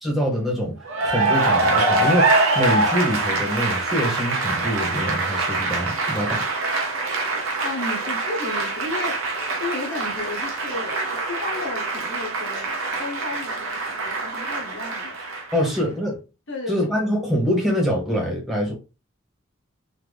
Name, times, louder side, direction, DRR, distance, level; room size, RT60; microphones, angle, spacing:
voice 1, 0.0-6.5 15.5-16.2 16.7-18.7, equal, ahead, 1.5 m, -24 dB
Cheering / Applause, 0.8-15.8, right 3 dB, 85° right, 0.9 m, -24 dB
voice 2, 7.6-15.9 16.5-16.9, left 2 dB, 60° left, 1.2 m, -34 dB
3.9 x 2.9 x 3.4 m
head